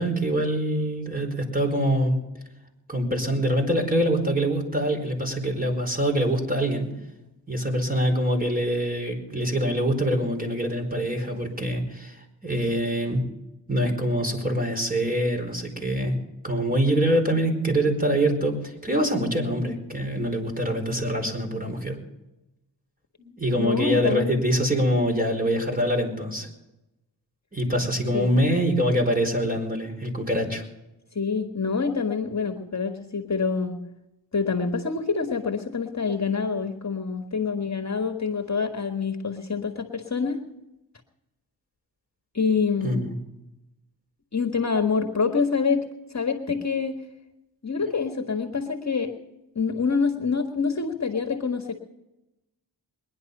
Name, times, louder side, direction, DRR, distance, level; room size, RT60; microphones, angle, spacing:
voice 1, 0.0-2.2 2.9-6.9 7.5-13.2 13.7-16.2 16.4-22.0 23.2-26.5 27.5-30.6 42.8-43.1, equal, 20° right, 3 dB, 4.9 m, -24 dB
voice 2, 23.6-24.4 25.0-25.2 28.1-28.3 31.2-33.8 34.3-40.4 42.3-43.0 44.3-45.8 46.1-47.0 47.6-49.1 49.6-51.7, left 5 dB, 35° left, 6 dB, 1.8 m, -26 dB
21.5 x 10.5 x 5.5 m, 0.94 s
supercardioid pair, 40°, 45 cm